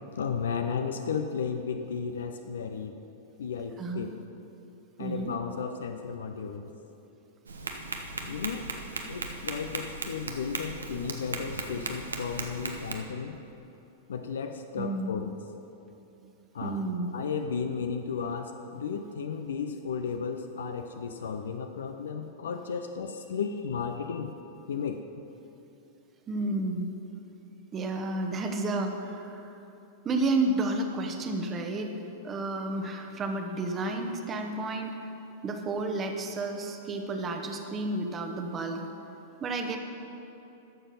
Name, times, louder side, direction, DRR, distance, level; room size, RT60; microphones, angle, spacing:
voice 1, 0.2-3.0 3.4-4.2 5.0-6.7 8.2-8.7 9.1-13.4 14.1-15.3 16.5-16.8 17.1-24.4 24.7-25.0, left 6 dB, 65° left, 6 dB, 0.5 m, -34 dB
voice 2, 5.0-5.3 14.8-15.1 16.6-17.1 26.3-26.9 27.7-29.5 30.0-31.9 32.2-34.9 35.4-38.8 39.4-39.8, right 2 dB, 25° right, 4 dB, 1.0 m, -31 dB
Tap, 7.5-12.9, right 3 dB, 75° right, 0.9 m, -37 dB
12.5 x 6.9 x 5.6 m, 2.9 s
figure-of-eight pair, 95°, 0 cm